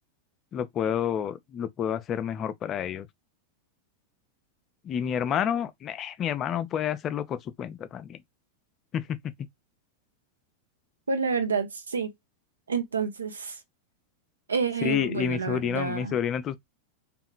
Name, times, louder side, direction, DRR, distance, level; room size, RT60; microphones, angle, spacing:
voice 1, 0.5-3.1 4.8-8.2 8.9-9.2 14.8-16.6, left 9 dB, 30° left, 0.3 m, -29 dB
voice 2, 11.1-12.1 12.7-13.6 14.5-16.2, right 5 dB, 75° right, 0.5 m, -29 dB
2.8 x 2.3 x 2.3 m
figure-of-eight pair, 90°, 0 cm